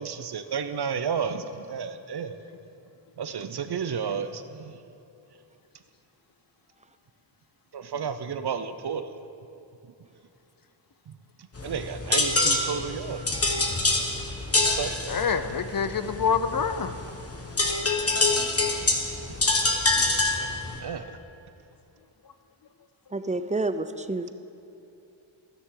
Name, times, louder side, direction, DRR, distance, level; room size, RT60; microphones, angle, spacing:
voice 1, 0.0-2.4 3.2-4.8 7.7-9.1 11.1-11.2 11.4-13.4 14.5-15.3 20.4-20.5 20.8-21.2, right 6 dB, 50° right, 10 dB, 0.7 m, -32 dB
sound 1, 11.5-20.8, left 2 dB, 30° left, 1.3 m, -26 dB
voice 2, 15.1-16.9, left 6 dB, 45° left, 11 dB, 0.5 m, -26 dB
voice 3, 23.1-24.3, right 2 dB, 15° right, 11 dB, 0.4 m, -29 dB
12.5 x 9.9 x 3.8 m, 2.8 s
cardioid pair, 50°, 49 cm